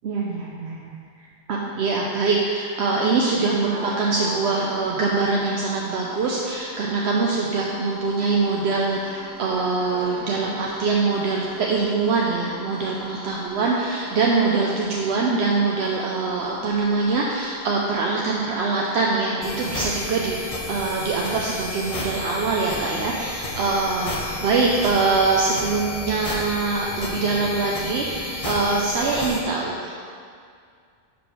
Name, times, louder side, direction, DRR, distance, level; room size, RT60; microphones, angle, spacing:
voice 1, 0.0-20.4 20.7-30.0, right 3 dB, 75° right, -2 dB, 0.9 m, -23 dB
sound 1, 3.0-19.6, right 1 dB, 30° right, 1.6 m, -40 dB
sound 2, 19.4-29.4, left 2 dB, 35° left, 0.9 m, -32 dB
5.2 x 5.0 x 6.1 m, 2.2 s
omnidirectional pair, 1.1 m